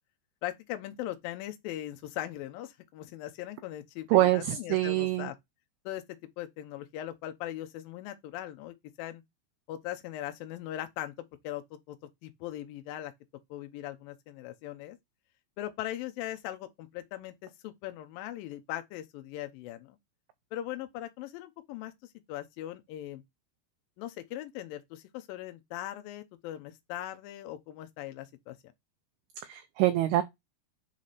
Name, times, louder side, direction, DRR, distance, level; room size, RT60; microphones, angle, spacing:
voice 1, 0.4-5.4 5.9-9.2 9.7-12.0 12.2-13.1 13.5-15.0 15.6-20.0 20.5-21.9 22.3-23.2 24.0-28.6, left 13 dB, 80° left, 2.1 m, -40 dB
voice 2, 4.1-5.3 29.5-30.2, right 15 dB, 85° right, 2.2 m, -25 dB
7.5 x 3.2 x 4.1 m
omnidirectional pair, 5.1 m